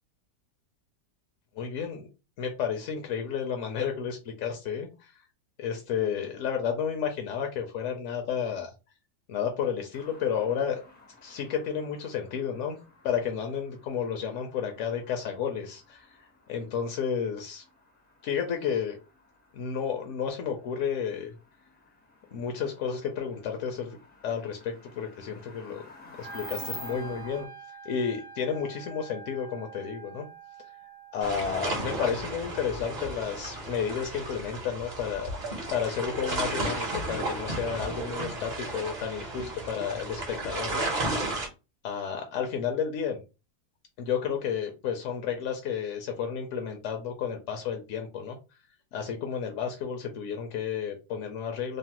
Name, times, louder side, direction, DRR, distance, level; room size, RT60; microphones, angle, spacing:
voice 1, 1.6-2.1 2.4-5.1 5.6-8.7 9.3-10.8 11.2-12.8 13.0-17.6 18.2-19.0 19.5-21.3 22.3-24.0 24.2-27.5 27.8-30.3 31.1-35.3 35.7-40.9 41.8-43.2 44.0-48.4 48.9-51.8, left 7 dB, 70° left, 4 dB, 0.7 m, -32 dB
sound 1, 9.9-27.5, left 1 dB, 15° left, 0.3 m, -50 dB
Wind instrument woodwind instrument, 26.2-32.3, right 6 dB, 75° right, 1.1 m, -46 dB
sound 2, 31.2-41.5, right 2 dB, 45° right, 0.6 m, -33 dB
3.0 x 2.0 x 2.9 m, 0.29 s
omnidirectional pair, 1.7 m